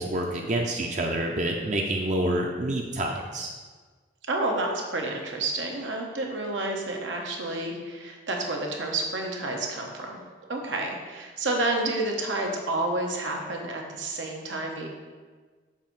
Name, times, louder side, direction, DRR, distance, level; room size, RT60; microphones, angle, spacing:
voice 1, 0.0-3.5, right 1 dB, 40° right, 1 dB, 0.5 m, -28 dB
voice 2, 4.3-10.2 10.5-14.9, right 2 dB, 90° right, 1 dB, 1.0 m, -30 dB
7.3 x 2.7 x 5.8 m, 1.4 s
head